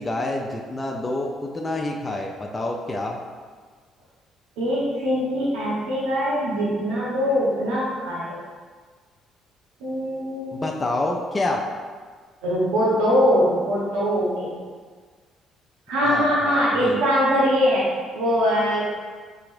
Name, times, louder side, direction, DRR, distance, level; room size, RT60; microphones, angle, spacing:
voice 1, 0.0-3.2 10.5-11.6 16.0-17.0, left 2 dB, 25° left, 0 dB, 0.5 m, -28 dB
voice 2, 4.6-8.4 9.8-10.7 12.4-14.5 15.9-18.8, equal, 80° right, -7 dB, 0.7 m, -22 dB
4.8 x 2.9 x 2.6 m, 1.5 s
hypercardioid pair, 55°, 0 cm